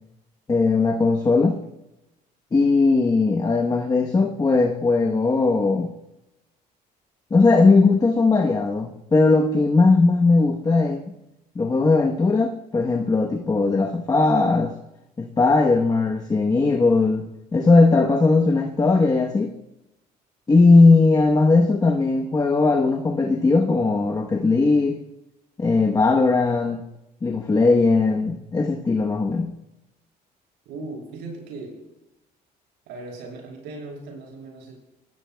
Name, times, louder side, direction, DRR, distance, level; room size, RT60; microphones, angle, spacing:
voice 1, 0.5-1.6 2.5-5.9 7.3-11.1 11.5-14.7 15.2-17.3 17.5-19.5 20.5-25.0 25.6-26.8 27.2-29.5, left 3 dB, 25° left, 2 dB, 1.0 m, -18 dB
voice 2, 30.7-31.8 32.9-34.7, right 3 dB, 90° right, -1 dB, 7.1 m, -37 dB
25.0 x 18.5 x 2.3 m, 0.92 s
cardioid pair, 110°, 17 cm